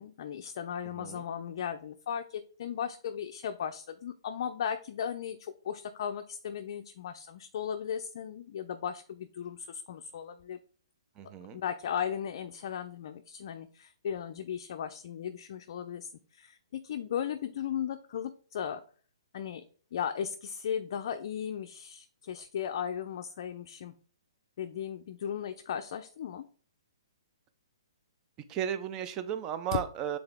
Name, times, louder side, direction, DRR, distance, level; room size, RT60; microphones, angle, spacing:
voice 1, 0.0-10.6 11.5-18.8 19.3-19.6 19.9-23.9 24.6-26.4 29.7-29.8, left 8 dB, 45° left, 7 dB, 0.5 m, -36 dB
voice 2, 11.2-11.6 28.5-30.2, right 9 dB, 20° right, 10 dB, 0.5 m, -34 dB
7.8 x 3.9 x 3.5 m, 0.44 s
hypercardioid pair, 160°, 3 cm